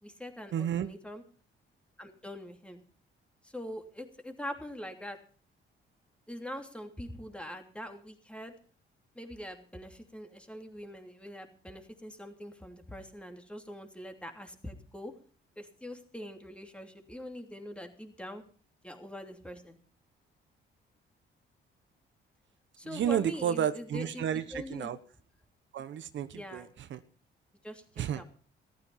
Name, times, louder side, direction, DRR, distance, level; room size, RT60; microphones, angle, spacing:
voice 1, 0.0-1.2 2.0-2.8 3.4-5.2 6.3-8.5 9.1-15.1 15.6-18.4 18.8-19.8 22.8-24.9 26.3-26.7 27.6-27.8 28.1-28.2, equal, 5° left, 5 dB, 3.0 m, -43 dB
voice 2, 0.5-0.9 22.9-25.0 25.7-26.6 26.9-27.0 28.0-28.2, right 9 dB, 65° right, 12 dB, 1.0 m, -31 dB
14.5 x 13.0 x 5.5 m, 0.41 s
cardioid pair, 95°, 20 cm